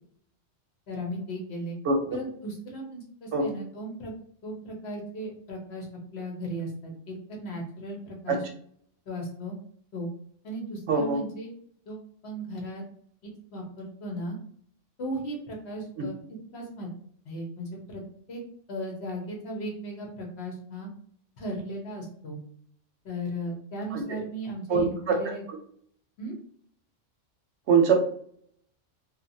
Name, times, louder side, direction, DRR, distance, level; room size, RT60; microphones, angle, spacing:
voice 1, 0.9-1.8 2.1-4.1 4.4-5.9 6.1-8.4 9.1-9.5 9.9-10.1 10.4-11.5 11.9-12.8 13.2-14.4 15.0-16.2 16.5-16.9 17.2-18.0 18.3-18.4 18.7-20.9 21.4-22.4 23.0-25.4 26.2-26.4, equal, 60° left, 0 dB, 1.0 m, -36 dB
voice 2, 10.9-11.2 16.0-16.1 23.9-24.0 24.7-25.2 27.7-27.9, right 5 dB, 70° right, 3 dB, 0.8 m, -22 dB
2.8 x 2.3 x 2.6 m, 0.62 s
omnidirectional pair, 1.3 m